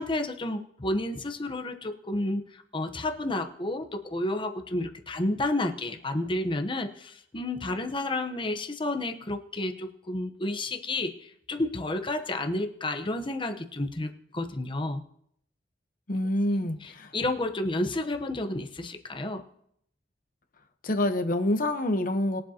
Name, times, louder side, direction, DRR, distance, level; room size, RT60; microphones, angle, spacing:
voice 1, 0.0-2.4 2.7-11.1 11.5-15.0 16.8-19.4, left 2 dB, 30° left, 6 dB, 0.9 m, -31 dB
voice 2, 16.1-17.1 20.8-22.4, left 1 dB, 50° left, 7 dB, 1.0 m, -27 dB
21.0 x 7.6 x 2.9 m, 0.71 s
head